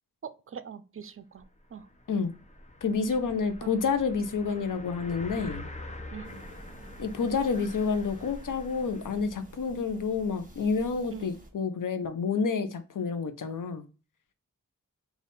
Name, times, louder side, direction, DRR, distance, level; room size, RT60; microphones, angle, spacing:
voice 1, 0.2-1.9 3.6-3.8 6.1-6.4 11.1-11.3, right 7 dB, 45° right, 13 dB, 0.4 m, -43 dB
sound 1, 1.4-1.5 1.7-9.2, left 1 dB, 25° left, 0.6 m, -45 dB
voice 2, 2.8-5.7 7.0-13.8, left 5 dB, 85° left, 9 dB, 0.6 m, -29 dB
sound 2, 6.2-11.5, right 2 dB, 25° right, 0.9 m, -50 dB
3.5 x 2.4 x 3.9 m, 0.34 s
wide cardioid pair, 50°, 31 cm